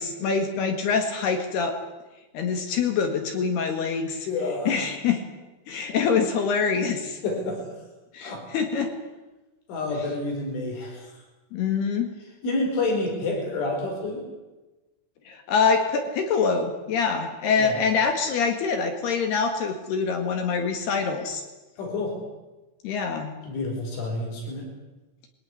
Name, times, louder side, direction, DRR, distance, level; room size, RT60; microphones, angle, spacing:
voice 1, 0.0-1.8 2.3-4.3 4.7-5.2 5.7-7.2 8.1-8.9 11.5-12.1 15.3-21.4 22.8-23.3, left 5 dB, 65° left, 6 dB, 3.6 m, -25 dB
voice 2, 4.3-4.8 7.2-7.6 8.2-8.4 9.7-11.1 12.4-14.2 17.6-17.8 21.8-22.2 23.4-24.7, left 2 dB, 90° left, 2 dB, 7.4 m, -28 dB
22.5 x 18.5 x 9.9 m, 1.1 s
omnidirectional pair, 5.4 m